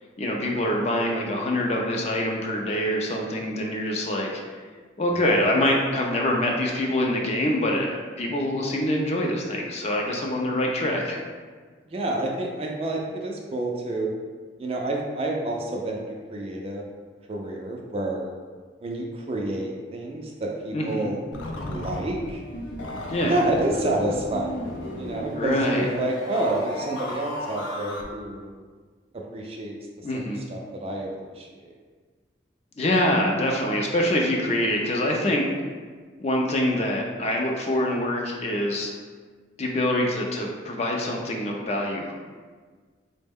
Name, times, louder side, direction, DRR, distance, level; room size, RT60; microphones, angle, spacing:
voice 1, 0.2-4.6 5.0-11.2 20.7-21.1 23.1-23.3 25.4-25.9 30.0-30.4 32.8-35.5 36.2-38.9 39.6-42.1, left 1 dB, 35° left, 0 dB, 0.4 m, -25 dB
voice 2, 5.2-5.5 11.9-14.1 14.6-16.9 17.3-18.4 18.8-21.2 21.7-22.4 23.2-28.5 29.3-31.5, right 1 dB, 30° right, 0 dB, 0.3 m, -29 dB
sound 1, 21.3-28.0, left 1 dB, 85° left, 0.5 m, -34 dB
4.2 x 2.1 x 3.5 m, 1.5 s
head